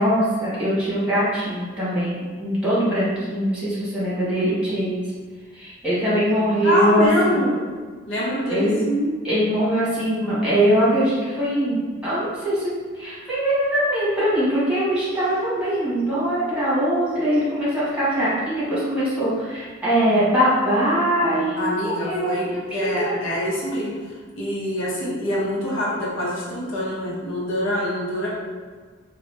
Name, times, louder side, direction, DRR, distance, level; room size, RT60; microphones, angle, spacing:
voice 1, 0.0-5.0 5.5-7.4 8.5-8.8 9.2-12.7 12.9-23.2, equal, 5° right, -10 dB, 1.2 m, -22 dB
voice 2, 6.6-7.6 8.1-9.1 21.6-24.0 24.4-28.3, equal, 85° left, -6 dB, 0.9 m, -25 dB
2.9 x 2.3 x 3.3 m, 1.5 s
head